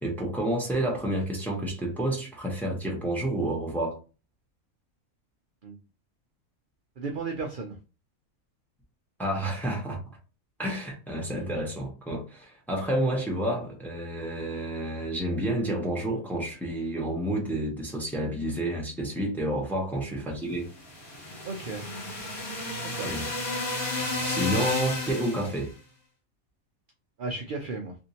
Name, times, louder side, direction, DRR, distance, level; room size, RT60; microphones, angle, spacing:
voice 1, 0.0-4.0 9.2-10.0 10.6-20.7 23.0-23.2 24.2-25.7, right 1 dB, ahead, 0.7 m, -29 dB
voice 2, 7.0-7.8 21.4-21.9 22.8-23.1 27.2-28.0, right 4 dB, 65° right, 0.5 m, -34 dB
sound 1, 20.7-25.6, left 2 dB, 75° left, 1.6 m, -32 dB
3.4 x 2.6 x 2.8 m
omnidirectional pair, 1.5 m